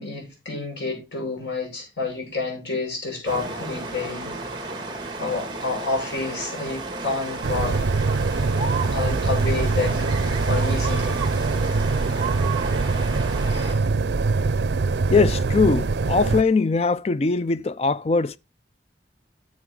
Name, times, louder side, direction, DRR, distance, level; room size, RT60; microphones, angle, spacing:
voice 1, 0.0-4.4 5.2-7.8 8.9-11.3, left 3 dB, 80° left, 6.3 m, -29 dB
sound 1, 3.3-13.7, right 3 dB, 25° right, 1.9 m, -32 dB
sound 2, 7.4-16.4, right 4 dB, 80° right, 0.5 m, -23 dB
voice 2, 15.1-18.4, left 4 dB, 35° left, 0.4 m, -21 dB
10.5 x 7.3 x 3.7 m
head